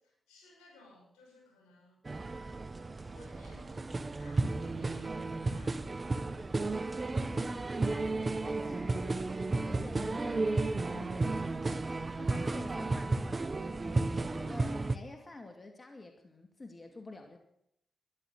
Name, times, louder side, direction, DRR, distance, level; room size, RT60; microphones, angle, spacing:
voice 1, 0.3-2.0 3.0-6.1 14.5-15.5, left 2 dB, 85° left, 0 dB, 5.8 m, -60 dB
sound 1, 2.1-15.0, right 3 dB, 40° right, 1.1 m, -33 dB
voice 2, 7.1-11.6 12.2-13.3 13.8-17.4, left 2 dB, 40° left, 4 dB, 2.4 m, -49 dB
13.5 x 11.0 x 8.3 m, 0.75 s
supercardioid pair, 40°, 0 cm